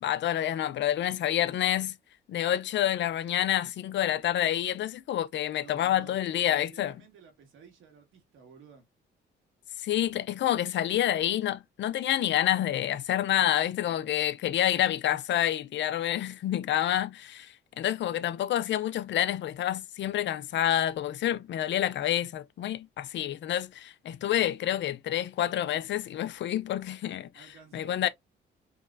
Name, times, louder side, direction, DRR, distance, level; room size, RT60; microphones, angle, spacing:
voice 1, 0.0-2.0 2.3-6.9 9.8-27.4 27.7-28.1, left 12 dB, 65° left, 0.5 m, -28 dB
voice 2, 5.6-8.9 27.3-28.1, right 6 dB, 80° right, 2.1 m, -53 dB
4.8 x 3.1 x 2.5 m
cardioid pair, 90°, 20 cm